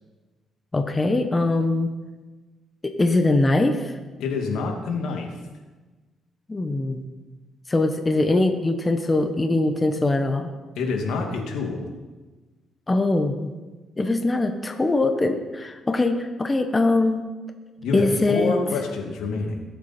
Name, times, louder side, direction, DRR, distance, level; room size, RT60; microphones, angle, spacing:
voice 1, 0.7-1.9 2.8-3.9 6.5-7.0 7.7-10.5 12.9-13.5 14.0-17.2 17.9-18.6, left 2 dB, 20° left, 6 dB, 1.2 m, -22 dB
voice 2, 4.2-5.3 10.7-11.8 17.8-19.6, left 4 dB, 85° left, 2 dB, 2.4 m, -27 dB
20.5 x 8.4 x 4.5 m, 1.3 s
cardioid pair, 90°, 0 cm